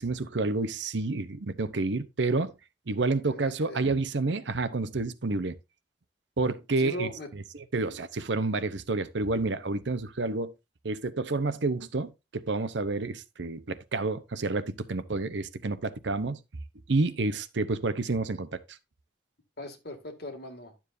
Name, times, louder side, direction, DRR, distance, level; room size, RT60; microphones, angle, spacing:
voice 1, 0.0-2.5 2.9-5.6 6.4-7.1 7.7-10.5 10.8-16.4 16.9-18.8, right 3 dB, 75° right, 0.8 m, -29 dB
voice 2, 3.2-3.8 6.8-7.3 19.6-20.7, left 2 dB, 55° left, 2.2 m, -39 dB
11.5 x 7.2 x 2.6 m
head